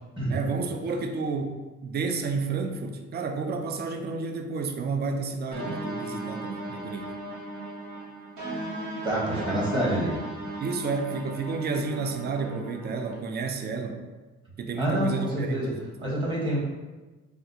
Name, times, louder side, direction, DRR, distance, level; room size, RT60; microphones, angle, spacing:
voice 1, 0.3-7.1 10.6-14.0 14.6-16.1, right 4 dB, 35° right, 6 dB, 0.4 m, -31 dB
sound 1, 5.5-13.1, right 1 dB, 80° right, 0.9 m, -36 dB
voice 2, 9.0-10.1 14.8-15.7 16.0-16.6, right 1 dB, 15° right, -6 dB, 1.2 m, -27 dB
3.4 x 2.4 x 2.8 m, 1.2 s
cardioid pair, 90°, 30 cm